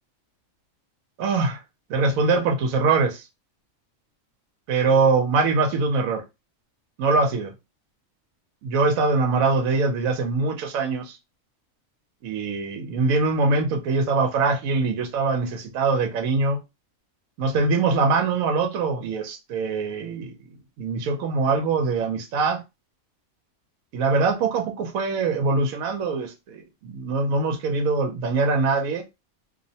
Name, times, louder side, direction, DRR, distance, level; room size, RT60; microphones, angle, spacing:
voice 1, 1.2-1.6 1.9-3.2 4.7-6.2 7.0-7.5 8.6-11.2 12.2-16.6 17.4-20.4 20.8-22.6 23.9-29.0, right 4 dB, 80° right, 1.0 m, -23 dB
2.5 x 2.1 x 2.7 m
omnidirectional pair, 1.4 m